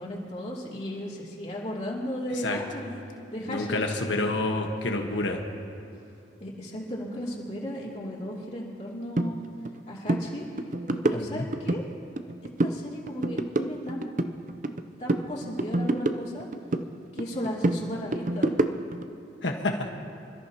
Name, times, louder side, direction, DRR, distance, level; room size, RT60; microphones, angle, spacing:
voice 1, 0.0-2.9 3.3-3.8 6.4-9.4 9.9-10.5 11.0-11.8 12.6-14.0 14.5-14.6 15.0-16.5 17.1-18.5, equal, 40° left, -5 dB, 2.9 m, -35 dB
voice 2, 3.5-5.4 11.1-11.4 19.4-19.7, left 2 dB, 90° left, 2 dB, 1.4 m, -28 dB
sound 1, 9.2-9.3 9.6-9.8 10.1-10.2 10.6-11.8 12.2-12.8 13.1-14.8 15.1-16.9 17.2-19.0, right 2 dB, 45° right, 0.6 m, -27 dB
27.0 x 14.0 x 2.9 m, 2.9 s
head